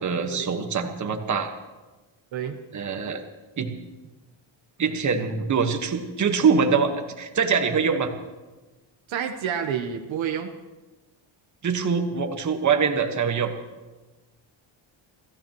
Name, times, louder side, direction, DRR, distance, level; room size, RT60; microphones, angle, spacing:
voice 1, 0.0-1.5 2.7-3.2 3.6-3.7 4.8-8.1 11.6-13.5, right 5 dB, 40° right, 5 dB, 1.5 m, -24 dB
voice 2, 9.1-10.5, right 8 dB, 75° right, 5 dB, 1.2 m, -29 dB
29.5 x 14.5 x 3.1 m, 1.2 s
cardioid pair, 125°, 47 cm